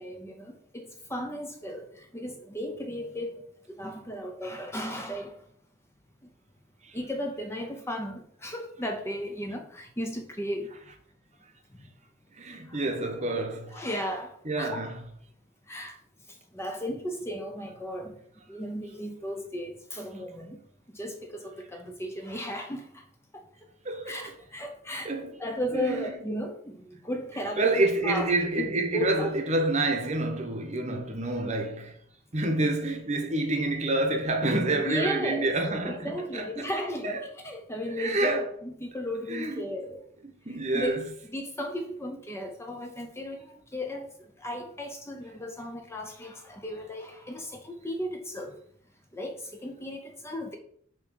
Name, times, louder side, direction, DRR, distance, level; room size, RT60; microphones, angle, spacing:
voice 1, 0.0-3.4 3.7-5.3 6.2-6.3 6.9-10.8 12.7-12.8 13.7-14.8 15.7-16.0 16.5-18.1 18.5-20.6 20.9-23.0 23.3-23.4 24.1-25.1 25.4-27.7 28.0-28.3 28.6-29.3 34.8-35.5 35.8-40.0 40.5-41.0 41.3-48.5 49.1-50.6, equal, 15° left, 0.6 m, -35 dB
voice 2, 12.3-13.8 14.4-15.0 23.8-24.3 25.0-25.4 25.7-26.0 27.6-32.0 32.3-36.7 37.0-37.2 37.9-38.5 39.3-39.7 40.2-41.0, right 2 dB, 35° right, 0.9 m, -28 dB
7.2 x 3.1 x 6.1 m
head